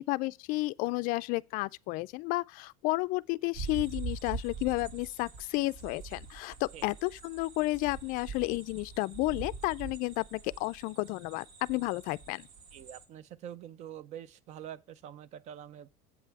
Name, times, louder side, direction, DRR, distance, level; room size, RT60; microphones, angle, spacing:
voice 1, 0.0-12.5, left 21 dB, 60° left, 0.4 m, -32 dB
sound 1, 3.5-13.1, right 4 dB, 85° right, 1.9 m, -44 dB
voice 2, 12.7-15.9, right 10 dB, 45° right, 0.5 m, -45 dB
8.2 x 5.5 x 4.7 m
cardioid pair, 155°, 16 cm